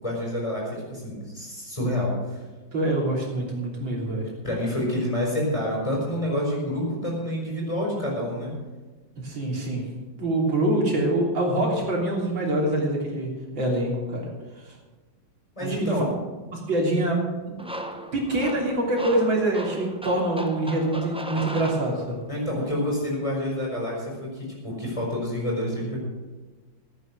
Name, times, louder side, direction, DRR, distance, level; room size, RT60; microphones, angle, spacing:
voice 1, 0.0-2.4 4.4-8.5 15.6-16.1 22.3-26.0, left 1 dB, 15° left, -3 dB, 5.6 m, -28 dB
voice 2, 2.7-4.3 9.2-9.9 10.2-13.3 13.6-14.2 14.6-14.7 15.6-16.0 16.5-17.5 18.1-22.2, right 1 dB, 85° right, -2 dB, 4.0 m, -25 dB
sound 1, 17.6-22.4, right 1 dB, 10° right, 0.3 m, -36 dB
15.0 x 9.6 x 6.5 m, 1.3 s
omnidirectional pair, 2.1 m